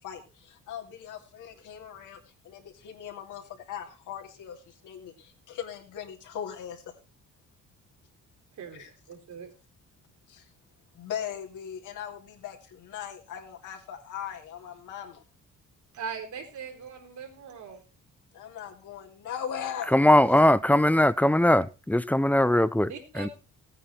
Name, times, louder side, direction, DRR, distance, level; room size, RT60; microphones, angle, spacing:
voice 1, 0.0-2.2 2.4-6.9 8.7-8.9 10.3-10.5 10.9-15.2 18.3-19.9 20.3-20.4, left 9 dB, 85° left, 2.9 m, -39 dB
voice 2, 8.6-9.5 15.9-17.8 22.9-23.3, right 6 dB, 70° right, 4.0 m, -40 dB
voice 3, 19.9-23.3, left 1 dB, 5° left, 0.6 m, -21 dB
16.0 x 9.1 x 4.3 m
cardioid pair, 90°, 30 cm